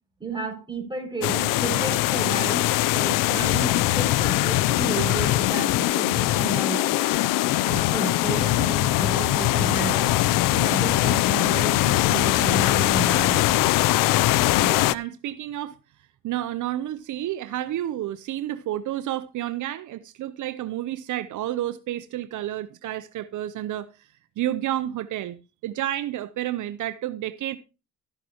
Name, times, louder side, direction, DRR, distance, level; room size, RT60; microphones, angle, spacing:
voice 1, 0.2-2.7 2.9-7.1 7.7-10.1 10.5-13.6, right 4 dB, 15° right, 5.9 m, -32 dB
sound 1, 1.2-15.0, left 16 dB, 85° left, 0.5 m, -21 dB
sound 2, 1.4-10.6, left 2 dB, 20° left, 4.2 m, -48 dB
voice 2, 14.6-15.8 16.2-24.1 24.4-25.4 25.6-27.6, right 13 dB, 70° right, 0.7 m, -30 dB
13.0 x 11.0 x 2.9 m
cardioid pair, 85°, 32 cm